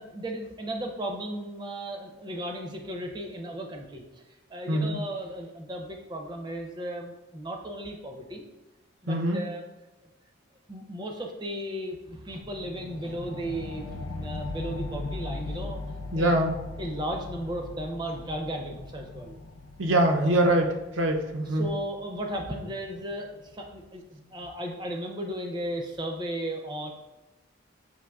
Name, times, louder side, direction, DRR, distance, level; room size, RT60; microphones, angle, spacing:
voice 1, 0.0-4.0 4.5-8.4 9.0-9.6 10.7-16.4 16.8-19.4 21.5-26.9, right 1 dB, 20° right, 2 dB, 0.5 m, -35 dB
voice 2, 4.7-5.0 9.1-9.4 16.1-16.6 19.8-21.6, right 1 dB, 75° right, 3 dB, 0.5 m, -24 dB
sound 1, 12.4-23.5, left 2 dB, 85° left, 0.4 m, -40 dB
6.0 x 2.8 x 2.3 m, 1.1 s
head